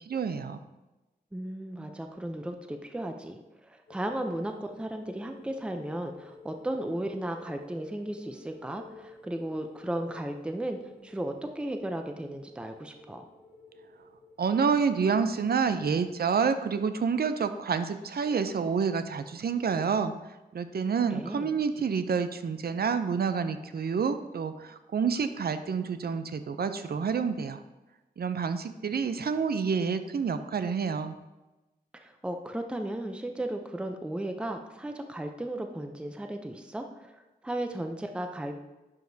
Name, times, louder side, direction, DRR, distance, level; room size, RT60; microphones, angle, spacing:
voice 1, 0.1-0.6 14.4-20.1 20.5-27.6 28.2-31.1, right 6 dB, 70° right, 10 dB, 0.5 m, -28 dB
voice 2, 1.3-13.2 21.1-21.5 31.9-37.2 37.4-38.6, right 1 dB, 5° right, 5 dB, 0.5 m, -35 dB
sound 1, 3.9-17.3 17.6-17.8, left 3 dB, 85° left, 1.3 m, -53 dB
10.5 x 4.9 x 2.7 m, 1.1 s
wide cardioid pair, 90°, 17 cm